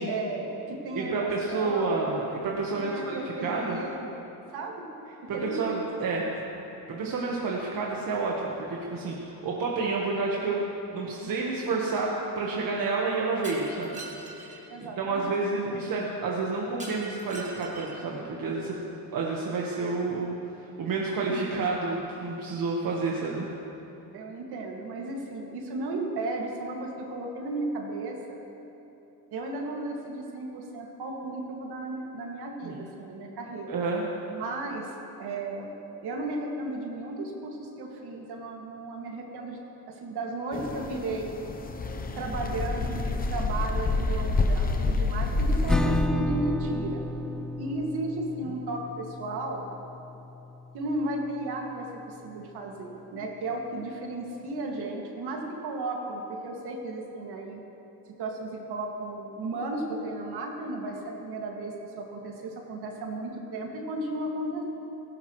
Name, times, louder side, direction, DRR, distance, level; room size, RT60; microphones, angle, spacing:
voice 1, 0.0-2.0 2.9-4.1 4.5-4.9 5.3-5.8 14.7-15.4 15.7-15.8 24.1-28.4 29.3-33.7 34.3-34.9 35.2-35.7 36.0-39.6 39.9-41.3 42.2-47.0 47.6-49.6 50.7-57.6 58.2-64.6, right 2 dB, 75° right, 0 dB, 2.3 m, -34 dB
voice 2, 0.9-3.8 5.3-6.3 6.9-10.6 10.9-14.6 15.0-18.8 19.1-20.3 20.8-23.5 32.6-32.9 33.7-34.0 48.4-48.5, right 3 dB, 60° right, -2 dB, 1.5 m, -29 dB
Shatter, 13.4-14.6 16.8-18.1, right 3 dB, 20° right, 2.2 m, -42 dB
sound 1, 40.5-46.1, left 3 dB, 25° left, 0.8 m, -27 dB
Acoustic guitar / Strum, 45.7-51.1, left 1 dB, ahead, 0.4 m, -33 dB
17.0 x 15.5 x 3.2 m, 3.0 s
cardioid pair, 125°, 39 cm